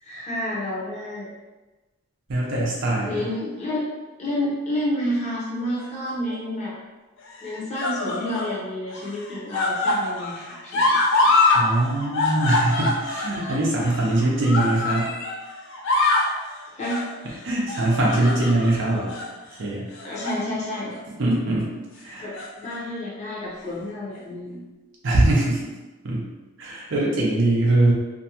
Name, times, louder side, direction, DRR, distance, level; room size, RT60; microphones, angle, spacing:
voice 1, 0.0-1.3 3.0-3.8 4.2-6.7 7.4-11.0 11.2-11.4 16.7-17.4 20.0-21.0 22.2-22.3 22.6-24.6, left 1 dB, 30° left, -6 dB, 0.7 m, -30 dB
voice 2, 2.3-3.2 11.5-15.1 17.4-19.1 19.6-19.9 21.2-22.3 25.0-25.7 26.0-26.2 26.6-27.9, right 2 dB, 55° right, -3 dB, 0.5 m, -22 dB
sound 1, 5.8-6.4 7.3-8.5 8.9-11.6 11.9-15.4 15.7-16.3 16.8-17.1 17.7-18.7 19.1-19.3 19.9-20.4 20.8-21.0 22.1-22.7 23.6-23.7, left 2 dB, 55° left, 0.4 m, -24 dB
2.5 x 2.2 x 2.7 m, 1.2 s
head